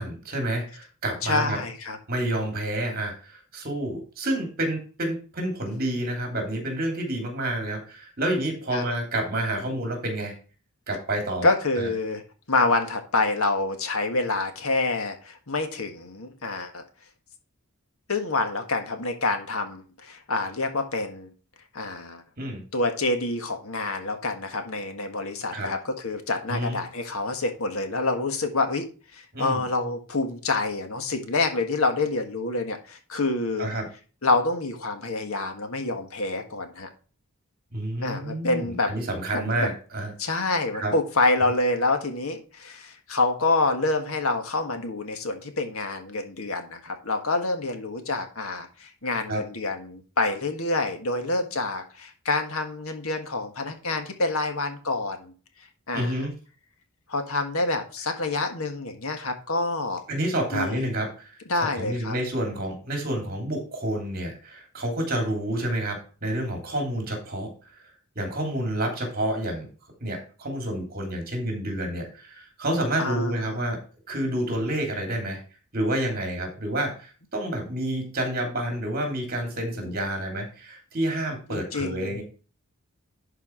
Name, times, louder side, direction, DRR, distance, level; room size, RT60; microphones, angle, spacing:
voice 1, 0.0-1.6 2.1-10.3 10.9-11.5 11.8-11.9 22.4-22.6 25.5-25.7 26.5-26.8 29.3-29.6 33.6-33.9 37.7-40.1 40.7-40.9 49.3-49.4 55.9-56.3 60.1-67.5 68.1-69.7 70.0-73.8 74.1-75.4 75.7-82.2, right 1 dB, 40° right, 2 dB, 3.0 m, -29 dB
voice 2, 1.2-2.0 8.7-8.8 11.4-12.2 12.5-16.8 18.1-21.3 21.7-22.2 22.7-28.9 29.1-33.7 34.2-36.9 38.0-38.9 39.3-39.7 40.2-55.3 55.9-56.3 57.1-60.0 60.5-60.9 61.5-62.1 73.0-73.6 79.8-79.9 81.5-82.2, left 3 dB, 70° left, 6 dB, 1.7 m, -27 dB
11.0 x 4.8 x 4.5 m, 0.36 s
head